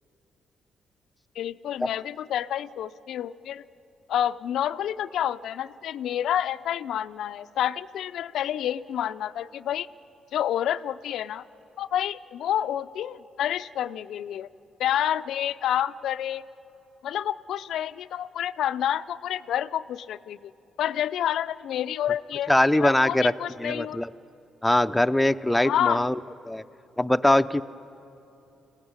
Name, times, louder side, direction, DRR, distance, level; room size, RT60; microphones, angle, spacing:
voice 1, 1.4-3.6 4.1-9.9 10.3-11.4 11.8-14.5 14.8-16.4 17.0-20.5 20.8-24.0 25.6-26.1, left 10 dB, 75° left, 12 dB, 0.4 m, -29 dB
voice 2, 22.5-23.3 23.6-24.1 24.6-26.2 26.5-26.6 27.0-27.6, left 1 dB, 5° left, 10 dB, 0.5 m, -22 dB
23.0 x 16.0 x 9.6 m, 2.8 s
cardioid pair, 90°, 0 cm